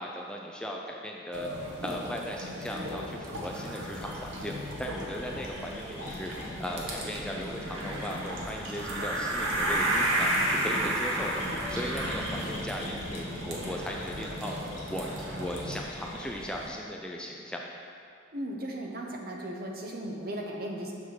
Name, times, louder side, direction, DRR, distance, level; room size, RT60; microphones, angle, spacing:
voice 1, 0.0-1.5 1.8-6.3 6.6-11.4 11.7-14.6 14.9-17.7, equal, 5° left, -1 dB, 0.5 m, -37 dB
sound 1, 1.3-15.8, right 1 dB, 75° right, 1.4 m, -33 dB
sound 2, 4.0-16.7, equal, 35° left, 1.8 m, -42 dB
voice 2, 18.3-20.9, right 1 dB, 50° right, 0 dB, 1.1 m, -36 dB
7.1 x 5.9 x 6.4 m, 2.5 s
head